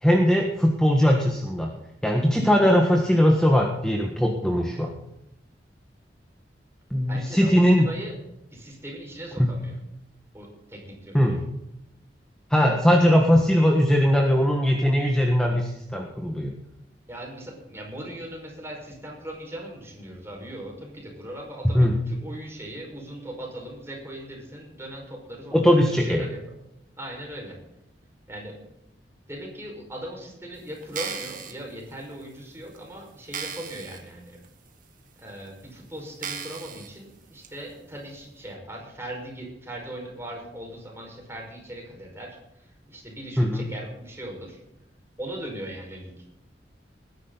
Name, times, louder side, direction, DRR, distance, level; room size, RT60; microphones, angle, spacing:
voice 1, 0.0-1.7 2.0-4.9 6.9-7.9 9.4-9.5 11.1-11.5 12.5-16.5 21.6-22.0 25.5-26.3 43.4-43.6, equal, 5° left, 1 dB, 1.5 m, -20 dB
voice 2, 7.1-8.2 8.5-9.8 10.3-11.2 17.1-26.4 27.0-27.6 28.3-28.6 29.3-34.4 35.2-44.6 45.2-46.1, right 1 dB, 15° right, -1 dB, 5.2 m, -39 dB
sound 1, 30.8-31.5 32.2-32.3 32.8-32.9 33.3-34.0 34.4-34.5 35.3-35.4 36.2-36.9 37.4-37.5, right 7 dB, 50° right, 1.9 m, -35 dB
20.5 x 10.5 x 4.0 m, 0.84 s
head